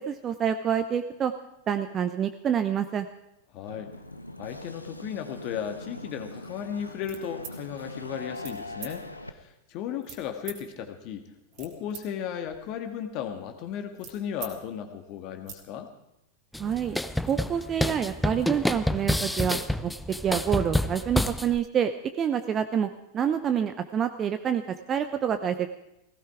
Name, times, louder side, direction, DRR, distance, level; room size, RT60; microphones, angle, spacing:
voice 1, 0.0-1.3 1.7-3.1 16.6-17.0 17.3-19.9 20.2-21.9 22.2-24.6 24.9-25.7, right 8 dB, 25° right, 9 dB, 0.8 m, -27 dB
voice 2, 3.5-3.9 4.4-11.2 11.6-15.9, left 8 dB, 40° left, 6 dB, 1.8 m, -35 dB
sound 1, 3.7-9.3, left 1 dB, 85° left, 1.0 m, -41 dB
sound 2, 7.0-7.6 8.3-8.6 8.8-8.9 10.0-10.6 11.3-12.0 12.4-14.5 14.9-15.0 15.3-15.6, right 8 dB, 45° right, 2.6 m, -43 dB
sound 3, 16.5-21.6, left 1 dB, 5° left, 0.6 m, -28 dB
17.5 x 16.0 x 4.9 m, 0.85 s
figure-of-eight pair, 90°, 0 cm